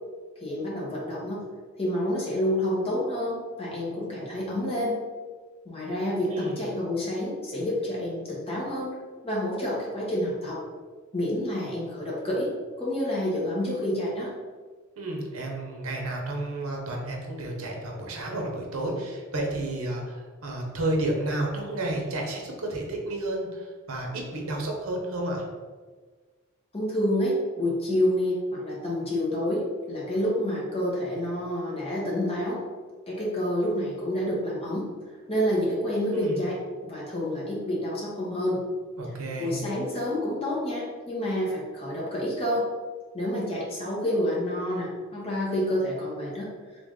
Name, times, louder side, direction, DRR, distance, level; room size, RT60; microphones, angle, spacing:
voice 1, 0.4-1.4 1.8-5.0 5.6-8.9 9.2-10.6 11.1-12.5 12.8-14.3 26.7-32.6 33.1-34.9 35.3-38.7 39.4-42.7 43.1-46.5, left 1 dB, 30° left, -5 dB, 1.0 m, -28 dB
voice 2, 6.3-6.6 15.0-25.4 36.1-36.4 39.0-39.5, right 1 dB, 85° right, 1 dB, 0.8 m, -31 dB
3.4 x 2.5 x 3.6 m, 1.4 s
head